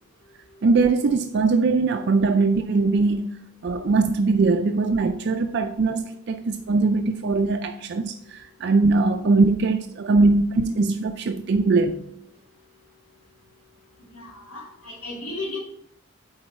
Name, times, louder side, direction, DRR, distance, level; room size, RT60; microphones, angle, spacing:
voice 1, 0.6-3.3 3.6-12.0, right 3 dB, 50° right, 0.4 m, -21 dB
voice 2, 14.1-15.6, left 2 dB, 85° left, 2.3 m, -34 dB
8.7 x 4.0 x 4.3 m
head